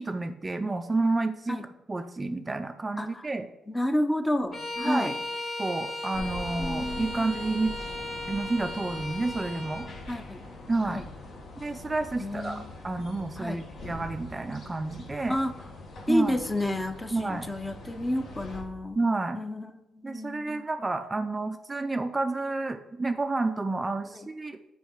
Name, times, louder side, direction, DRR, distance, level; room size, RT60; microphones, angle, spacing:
voice 1, 0.0-1.6 1.9-3.5 4.8-5.1 5.6-7.8 8.3-9.9 10.7-11.0 11.6-15.4 16.1-16.4 17.1-17.5 19.0-19.4 20.0-24.6, right 3 dB, 20° right, 7 dB, 0.4 m, -30 dB
voice 2, 3.7-5.2 6.6-7.3 10.1-10.5 10.9-11.0 12.2-12.7 13.4-13.6 15.3-15.5 16.1-19.0 19.3-20.7 24.1-24.3, left 1 dB, 15° left, 9 dB, 0.7 m, -30 dB
Bowed string instrument, 4.5-9.9, left 2 dB, 40° left, 2.3 m, -36 dB
sound 1, 6.1-18.6, left 2 dB, 60° left, 1.6 m, -43 dB
6.3 x 4.5 x 6.4 m, 1.0 s
cardioid pair, 90°, 0 cm